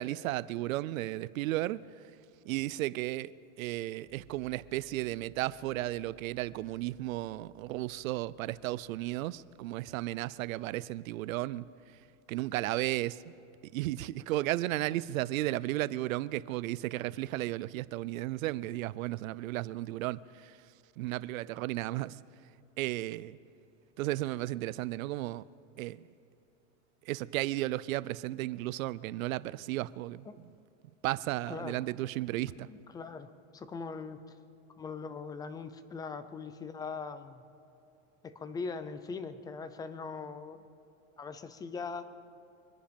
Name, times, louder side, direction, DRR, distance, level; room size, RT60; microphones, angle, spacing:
voice 1, 0.0-1.8 2.5-11.7 12.3-13.2 13.7-20.6 21.0-22.2 22.8-23.4 24.0-25.4 25.8-26.0 27.1-30.3 31.0-32.7, right 16 dB, 85° right, 0.6 m, -34 dB
sound 1, 4.1-13.9, right 2 dB, 25° left, 3.8 m, -65 dB
voice 2, 31.5-31.8 32.7-34.2 34.8-37.5 38.2-40.6 41.2-42.0, left 4 dB, 10° left, 0.4 m, -41 dB
24.5 x 10.0 x 5.2 m
supercardioid pair, 140°, 40 cm